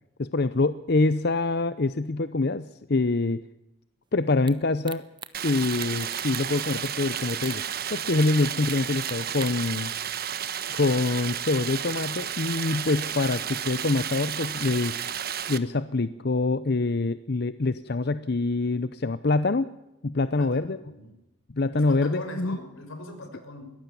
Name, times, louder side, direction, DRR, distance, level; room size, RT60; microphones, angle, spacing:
voice 1, 0.2-3.4 4.1-5.0 5.4-7.6 7.9-9.9 10.7-15.1 15.5-19.7 20.0-20.8 21.5-22.6, left 3 dB, 50° left, 13 dB, 0.7 m, -25 dB
sound 1, 4.5-4.6 4.9-5.3 5.6-6.9 7.2-7.6 8.2-8.3 8.7-9.7, right 7 dB, 25° right, 1.0 m, -40 dB
Stream, 5.3-15.6, right 9 dB, 50° right, 1.2 m, -32 dB
voice 2, 20.2-21.2 21.7-23.7, left 1 dB, 90° left, 6 dB, 6.2 m, -41 dB
22.5 x 18.0 x 7.0 m, 0.91 s
head